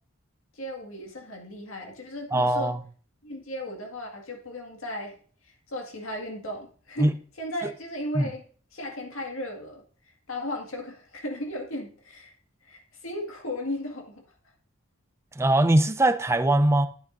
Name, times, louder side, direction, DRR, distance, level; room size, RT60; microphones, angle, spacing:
voice 1, 0.5-2.7 3.2-5.1 5.4-7.1 7.4-8.4 8.7-9.8 10.3-12.3 12.6-14.2, left 1 dB, 85° left, 2.0 m, -35 dB
voice 2, 2.3-2.8 7.0-7.1 8.1-8.3 15.4-16.9, right 1 dB, 15° right, 0.5 m, -21 dB
10.5 x 8.6 x 2.6 m
head